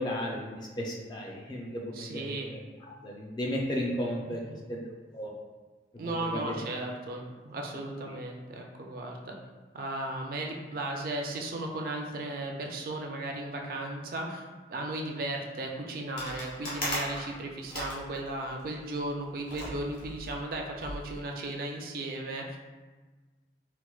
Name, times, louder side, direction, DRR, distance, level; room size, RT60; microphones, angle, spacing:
voice 1, 0.0-2.3 3.0-4.4 4.7-4.8 5.1-5.3 6.2-6.4, equal, 25° left, -2 dB, 0.4 m, -34 dB
voice 2, 1.9-2.5 4.2-4.6 6.0-9.4 9.7-14.4 14.7-22.6, right 2 dB, 50° right, 1 dB, 0.4 m, -36 dB
sound 1, 16.2-18.8 19.5-21.1, left 1 dB, 50° left, 1.0 m, -38 dB
4.3 x 2.1 x 2.3 m, 1.3 s
head